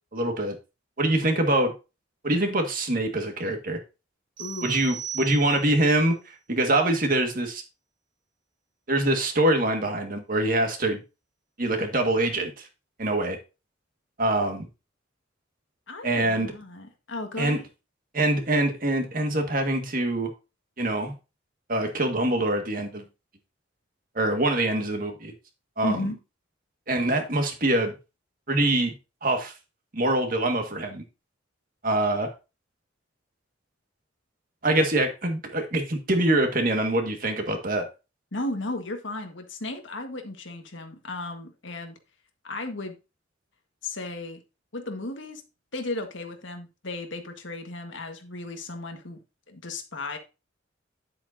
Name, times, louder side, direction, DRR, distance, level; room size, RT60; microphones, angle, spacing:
voice 1, 0.1-0.6 1.0-1.7 2.2-3.8 4.6-6.1 6.5-7.6 8.9-11.0 11.6-12.7 13.0-13.4 14.2-14.7 16.0-16.5 17.4-17.6 18.1-20.3 20.8-21.1 21.7-23.0 24.2-25.3 25.8-26.0 26.9-27.9 28.5-28.9 29.2-29.5 29.9-31.0 31.8-32.3 34.6-37.8, right 1 dB, 45° right, 1.8 m, -24 dB
voice 2, 4.4-4.8 15.9-17.6 25.8-26.2 38.3-42.0 42.4-43.0 43.8-44.4 44.7-45.4 45.7-49.2 49.5-50.2, left 2 dB, 75° left, 1.6 m, -35 dB
sound 1, 4.4-5.9, right 8 dB, 25° right, 2.3 m, -38 dB
10.0 x 7.7 x 2.7 m
head